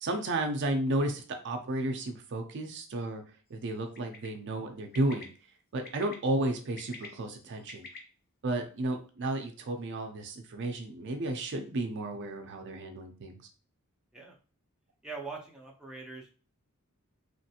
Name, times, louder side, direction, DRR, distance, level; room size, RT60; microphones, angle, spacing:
voice 1, 0.0-3.2 3.5-5.3 5.7-7.9 8.4-13.4, right 2 dB, 55° right, 4 dB, 0.5 m, -33 dB
Bird, 3.9-4.3 4.9-5.2 5.8-6.1 6.6-8.0, left 4 dB, 45° left, 0.7 m, -46 dB
voice 2, 15.0-16.3, right 4 dB, 5° right, -2 dB, 0.6 m, -42 dB
3.1 x 2.5 x 2.8 m, 0.37 s
head